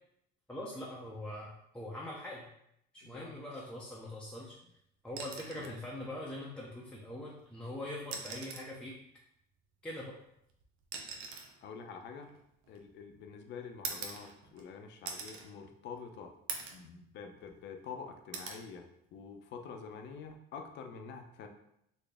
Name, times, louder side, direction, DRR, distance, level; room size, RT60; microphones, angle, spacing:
voice 1, 0.5-2.5 2.9-4.6 5.0-9.0 9.8-10.2, left 1 dB, 5° left, -5 dB, 0.5 m, -42 dB
voice 2, 3.0-3.4 5.5-5.7 8.3-8.4 11.6-12.3 12.7-16.3 16.7-21.5, left 5 dB, 60° left, 5 dB, 0.6 m, -47 dB
sound 1, 5.1-5.8 7.2-7.3 8.0-8.8 10.0-13.0 13.8-14.7 15.1-15.5 15.9-16.0 16.5-16.9 17.3-17.9 18.3-18.7 20.1-20.3, right 5 dB, 90° right, 0.6 m, -43 dB
4.1 x 2.0 x 3.3 m, 0.76 s
cardioid pair, 115°, 21 cm